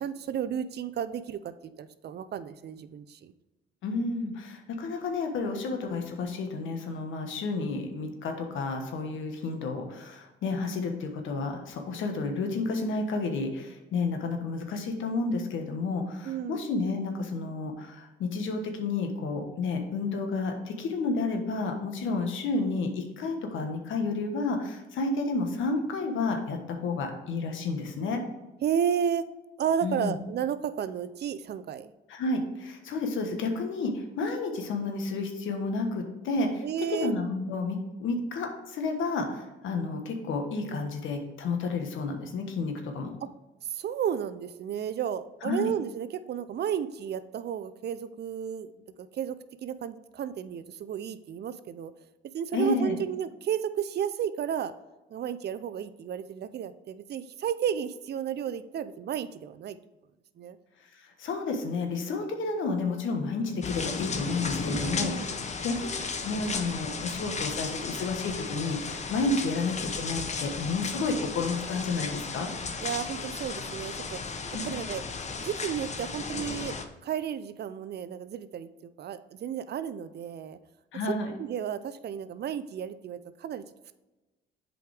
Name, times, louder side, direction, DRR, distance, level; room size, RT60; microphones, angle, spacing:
voice 1, 0.0-3.3 16.2-16.6 28.6-29.3 29.6-31.9 36.6-37.1 43.2-43.3 43.7-48.7 49.0-51.9 52.3-54.7 55.1-59.8 60.4-60.6 64.7-65.4 72.8-74.2 74.7-75.0 75.4-76.8 77.0-78.7 79.0-80.6 81.4-83.6, right 8 dB, 55° right, 13 dB, 0.5 m, -32 dB
voice 2, 3.8-28.2 29.8-30.2 32.1-36.6 36.9-43.2 45.4-45.7 52.5-53.0 61.2-65.9 66.2-72.5 74.5-74.7 80.9-81.3, left 3 dB, 75° left, 4 dB, 1.3 m, -31 dB
sound 1, 63.6-76.9, left 4 dB, 35° left, 0.8 m, -35 dB
7.7 x 5.0 x 3.4 m, 1.1 s
cardioid pair, 90°, 20 cm